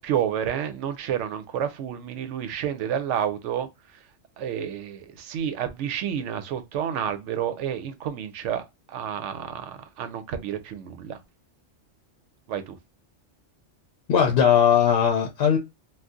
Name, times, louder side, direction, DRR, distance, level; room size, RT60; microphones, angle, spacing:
voice 1, 0.0-4.0 4.4-11.2 12.5-12.8, right 9 dB, 90° right, 0.9 m, -30 dB
voice 2, 14.1-15.6, left 8 dB, 65° left, 0.8 m, -19 dB
2.6 x 2.3 x 3.5 m
omnidirectional pair, 1.2 m